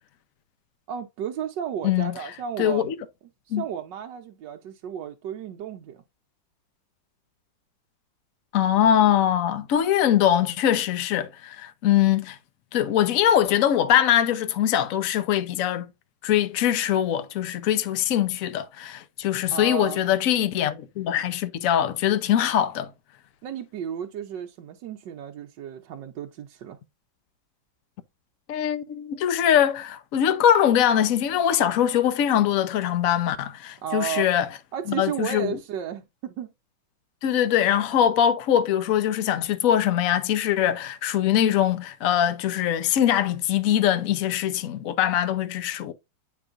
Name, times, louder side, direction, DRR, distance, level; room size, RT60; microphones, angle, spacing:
voice 1, 0.9-2.9 3.5-6.0 19.5-20.0 23.4-26.8 33.8-34.3 34.7-36.5, right 9 dB, 70° right, 1.3 m, -33 dB
voice 2, 1.8-2.1 2.6-2.9 3.5-3.6 8.5-12.4 12.7-15.9 16.2-22.9 28.5-34.5 34.9-35.6 37.2-45.9, left 10 dB, 60° left, 0.9 m, -22 dB
8.5 x 5.3 x 2.5 m
omnidirectional pair, 2.2 m